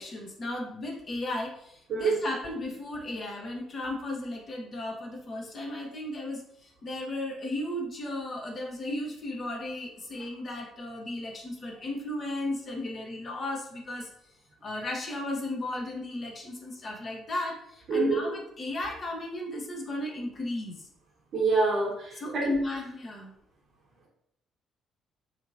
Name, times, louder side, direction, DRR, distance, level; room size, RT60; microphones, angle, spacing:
voice 1, 0.0-14.1 14.6-20.9 22.2-23.3, left 1 dB, 35° left, 0 dB, 0.7 m, -35 dB
voice 2, 1.9-2.2 17.9-18.2 21.3-22.5, right 4 dB, 50° right, -3 dB, 0.9 m, -26 dB
2.9 x 2.6 x 2.6 m, 0.74 s
figure-of-eight pair, 45°, 0 cm